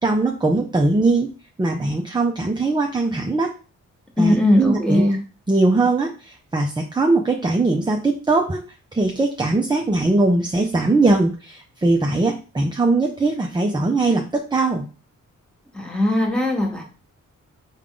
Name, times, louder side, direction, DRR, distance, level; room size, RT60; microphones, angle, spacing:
voice 1, 0.0-1.3 1.6-3.5 4.2-5.0 5.5-8.6 8.9-14.8, right 2 dB, 15° right, 2 dB, 0.5 m, -20 dB
voice 2, 4.2-5.2 15.7-16.8, left 1 dB, 5° left, 0 dB, 1.2 m, -19 dB
3.6 x 2.3 x 3.7 m, 0.35 s
cardioid pair, 55°, 32 cm